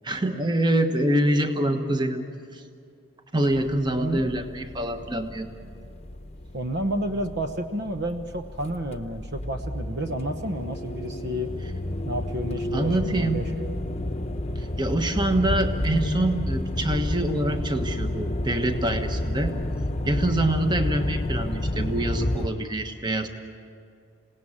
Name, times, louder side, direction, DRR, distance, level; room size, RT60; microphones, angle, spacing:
voice 1, 0.0-2.2 2.5-2.6 3.3-5.5 12.7-13.4 14.6-19.5 20.0-23.3, right 1 dB, 20° right, 6 dB, 1.2 m, -25 dB
sound 1, 3.5-22.5, left 1 dB, 30° left, 0.9 m, -30 dB
voice 2, 6.5-11.5 12.1-13.8, right 1 dB, 50° right, 7 dB, 1.0 m, -30 dB
27.0 x 18.0 x 8.7 m, 2.3 s
head